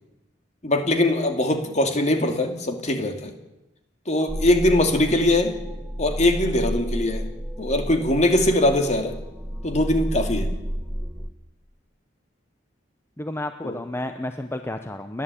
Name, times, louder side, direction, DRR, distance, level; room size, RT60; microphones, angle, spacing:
voice 1, 0.6-3.3 4.1-5.6 6.0-7.3 7.6-9.2 9.6-10.5 13.6-13.8, left 1 dB, 40° left, 5 dB, 2.7 m, -21 dB
sound 1, 4.3-11.3, equal, 10° right, 1.7 m, -31 dB
voice 2, 13.2-15.2, left 1 dB, 15° left, 7 dB, 0.9 m, -31 dB
29.5 x 11.5 x 8.5 m, 0.95 s
head